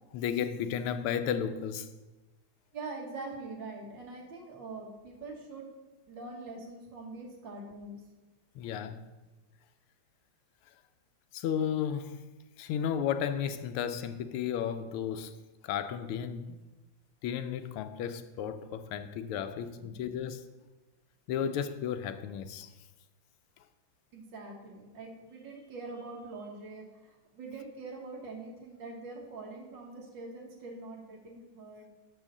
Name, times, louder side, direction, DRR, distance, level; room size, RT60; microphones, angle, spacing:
voice 1, 0.1-1.9 8.6-9.0 11.3-12.2 12.6-15.3 15.6-16.6 17.2-20.5 21.3-22.7, left 8 dB, 85° left, 1.5 m, -33 dB
voice 2, 2.7-5.7 6.1-8.0 19.8-19.9 24.1-31.9, right 3 dB, 60° right, 2.0 m, -44 dB
6.3 x 6.2 x 6.5 m
omnidirectional pair, 2.4 m